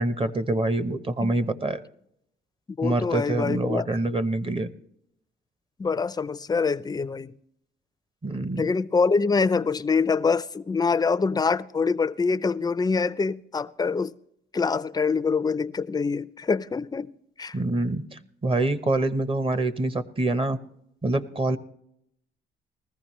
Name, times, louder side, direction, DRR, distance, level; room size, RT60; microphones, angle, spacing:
voice 1, 0.0-1.8 2.8-4.7 8.2-8.7 17.5-20.6 21.0-21.6, right 2 dB, 25° right, 0.8 m, -26 dB
voice 2, 2.7-3.9 5.8-7.3 8.6-14.1 14.5-17.1 17.4-17.6, left 4 dB, 20° left, 0.4 m, -25 dB
20.0 x 14.5 x 3.1 m
cardioid pair, 90°, 20 cm